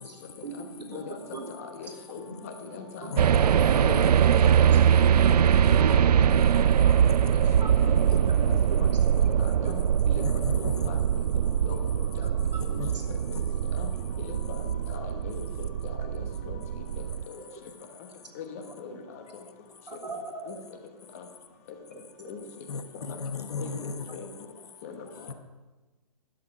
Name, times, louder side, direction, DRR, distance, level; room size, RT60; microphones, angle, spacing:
voice 1, 0.0-1.5 1.8-2.7 3.0-3.2 6.1-6.5 7.6-8.2 8.7-8.9 9.2-9.3 9.6-9.7 10.6-10.7 12.7-13.5 14.7-14.8 17.3-17.4 18.8-19.0 19.3-19.4 19.9-20.6 21.9-22.0 24.0-24.1, right 2 dB, 90° right, 1 dB, 3.5 m, -41 dB
voice 2, 1.6-3.0 3.3-3.4 3.7-5.5 5.8-6.9 7.4-7.5 7.8-8.0 8.4-8.9 9.2-9.3 9.6-9.8 10.1-11.0 11.6-12.3 13.7-13.9 14.2-14.6 14.9-16.6 18.4-18.9 20.5-20.6 22.3-22.4 23.6-23.7 24.2-24.3 24.8-25.0, left 6 dB, 20° left, 5 dB, 1.1 m, -41 dB
sound 1, 3.2-17.2, right 8 dB, 70° right, 0.4 m, -23 dB
voice 3, 3.6-4.1 10.2-10.9 12.8-12.9 13.3-13.4 22.7-24.2 25.3-25.4, left 4 dB, 65° left, 10 dB, 1.3 m, -36 dB
11.5 x 7.6 x 8.1 m, 1.2 s
hypercardioid pair, 165°, 21 cm